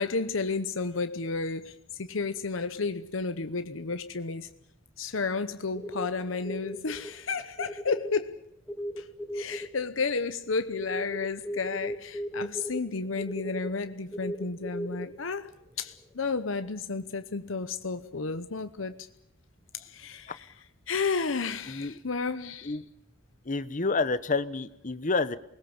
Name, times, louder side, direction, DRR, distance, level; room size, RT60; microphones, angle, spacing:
voice 1, 0.0-4.5 5.0-8.4 9.0-9.1 9.3-15.5 15.8-19.1 19.8-22.8, left 4 dB, 90° left, 0.9 m, -32 dB
sound 1, 5.7-7.2 7.6-8.1 8.7-15.1 15.8-16.1, equal, 5° left, 2.2 m, -37 dB
voice 2, 23.5-25.4, left 3 dB, 40° left, 1.0 m, -28 dB
28.0 x 20.5 x 7.2 m
head